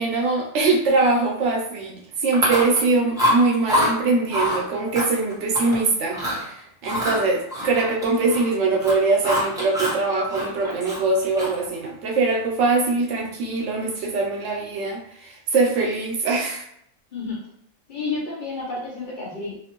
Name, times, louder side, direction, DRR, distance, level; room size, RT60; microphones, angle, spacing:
voice 1, 0.0-16.6, right 3 dB, 75° right, 0 dB, 0.9 m, -22 dB
Chewing mastication, 2.3-2.9 3.2-3.9 4.3-4.6 4.9-5.8 6.1-6.4 6.8-8.5 8.7-10.0 10.3-11.7, left 1 dB, 5° right, 0.9 m, -25 dB
voice 2, 17.1-17.5 17.9-19.6, left 3 dB, 50° left, -3 dB, 0.7 m, -30 dB
2.5 x 2.5 x 2.8 m, 0.70 s
omnidirectional pair, 1.3 m